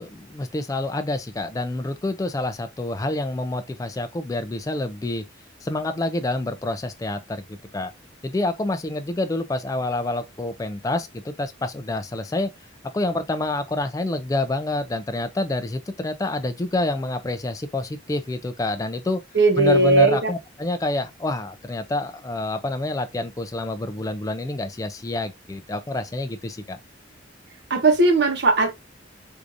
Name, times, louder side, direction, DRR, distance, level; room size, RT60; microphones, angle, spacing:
voice 1, 0.0-5.2 5.6-7.9 8.2-12.5 12.9-19.2 19.6-26.8, left 2 dB, 15° left, 0.3 m, -27 dB
voice 2, 19.3-20.3 27.7-28.7, right 2 dB, 60° right, 0.9 m, -18 dB
4.7 x 2.5 x 2.5 m
head